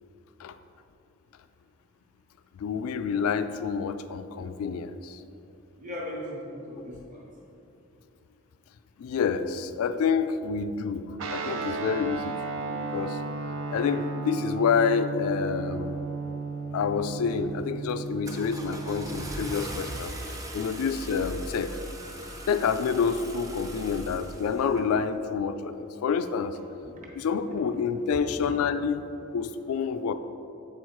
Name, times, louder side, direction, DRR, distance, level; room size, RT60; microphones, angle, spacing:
voice 1, 2.5-5.2 6.8-6.9 9.0-12.3 12.6-13.2 13.7-16.0 16.7-20.1 20.5-21.8 22.5-26.6 27.1-29.0 29.3-30.1, left 6 dB, 80° left, 12 dB, 0.3 m, -28 dB
voice 2, 5.8-7.2 28.4-28.5, left 1 dB, 35° right, -2 dB, 1.1 m, -37 dB
Guitar, 11.2-19.7, right 3 dB, 70° right, 0.6 m, -34 dB
Car / Engine starting, 17.1-17.4 17.9-24.9, right 1 dB, 15° right, 0.5 m, -39 dB
7.3 x 4.6 x 4.4 m, 2.8 s
head